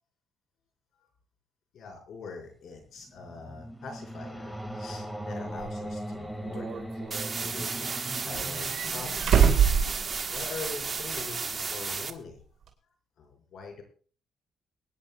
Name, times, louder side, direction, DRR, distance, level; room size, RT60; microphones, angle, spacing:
voice 1, 1.7-6.8 7.4-9.5 10.3-12.4 13.2-13.8, left 4 dB, 70° left, 2 dB, 4.7 m, -43 dB
sound 1, 2.9-10.2, right 1 dB, 5° left, 1.8 m, -39 dB
sound 2, 5.5-5.6 6.5-7.4 8.3-10.7 11.0-11.1 12.7-12.8, right 7 dB, 60° right, 3.4 m, -25 dB
sound 3, 7.1-12.1, right 5 dB, 35° right, 1.2 m, -33 dB
23.5 x 10.5 x 2.3 m, 0.40 s
cardioid pair, 90°, 0 cm